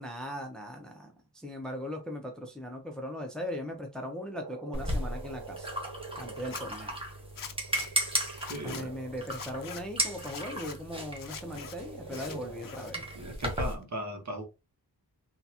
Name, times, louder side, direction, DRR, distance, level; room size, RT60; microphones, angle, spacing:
voice 1, 0.0-5.7 6.2-7.0 8.6-13.0, equal, ahead, 0.7 m, -39 dB
Frog, 4.3-10.2 11.1-13.6, right 4 dB, 70° right, 1.2 m, -48 dB
sound 1, 4.7-13.7, right 1 dB, 15° right, 1.2 m, -36 dB
Zipper (clothing), 6.4-6.6 7.4-7.9 8.3-8.8 9.3-9.8 10.2-10.8 11.2-11.7 12.1-12.9 13.2-13.8, left 7 dB, 55° left, 0.6 m, -43 dB
voice 2, 8.5-9.0 12.9-14.4, right 1 dB, 45° right, 1.1 m, -38 dB
3.9 x 2.3 x 2.8 m
wide cardioid pair, 85°, 40 cm